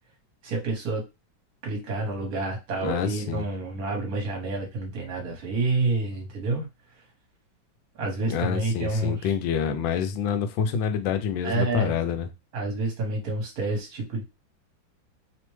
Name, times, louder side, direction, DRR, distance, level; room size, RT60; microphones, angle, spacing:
voice 1, 0.4-1.0 1.6-6.7 7.9-9.3 11.4-11.9 12.5-14.2, right 3 dB, 55° right, 1.3 m, -28 dB
voice 2, 2.8-3.4 8.3-12.3, left 7 dB, 80° left, 1.3 m, -27 dB
3.3 x 2.1 x 3.1 m
omnidirectional pair, 2.1 m